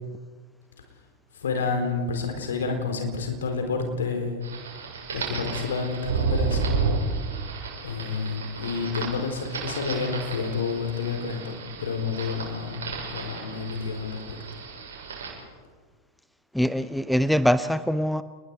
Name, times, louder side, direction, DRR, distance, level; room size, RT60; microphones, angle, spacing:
voice 1, 1.3-4.4 5.1-6.7 7.8-14.4, left 5 dB, 65° left, 4.1 m, -29 dB
sound 1, 4.4-15.3, right 4 dB, 65° right, 6.9 m, -32 dB
voice 2, 16.5-18.2, equal, ahead, 0.6 m, -23 dB
29.0 x 20.5 x 4.8 m
figure-of-eight pair, 90°, 0 cm